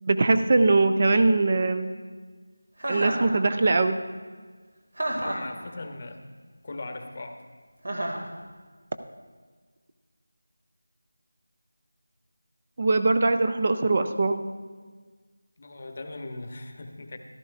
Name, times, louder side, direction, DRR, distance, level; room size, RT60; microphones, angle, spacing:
voice 1, 0.0-1.9 2.9-4.0 12.8-14.4, right 3 dB, 35° right, 8 dB, 0.4 m, -21 dB
Chuckle chortle, 2.8-3.3 5.0-5.5 7.8-8.3, right 1 dB, 75° right, 2.0 m, -29 dB
voice 2, 5.1-6.2 6.6-7.4 15.6-17.2, left 2 dB, 35° left, 5 dB, 0.8 m, -39 dB
14.5 x 12.0 x 2.4 m, 1.5 s
figure-of-eight pair, 175°, 0 cm